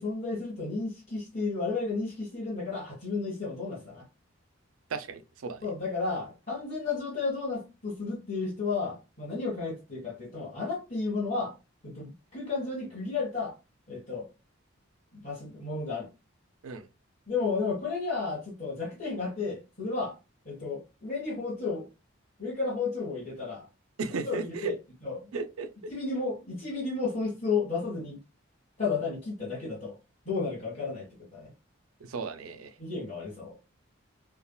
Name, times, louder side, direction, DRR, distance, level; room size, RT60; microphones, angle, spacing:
voice 1, 0.0-4.0 5.6-11.5 11.8-13.5 13.9-14.3 15.1-16.1 17.3-20.1 20.4-21.9 22.4-23.6 24.2-24.7 25.0-25.3 25.9-28.2 28.8-30.0 30.2-31.1 31.3-31.5 32.8-33.5, left 4 dB, 40° left, 1.5 m, -32 dB
voice 2, 4.9-5.6 16.6-16.9 24.0-24.7 25.3-25.9 32.0-32.7, right 4 dB, 85° right, 0.5 m, -35 dB
3.4 x 2.3 x 2.2 m
head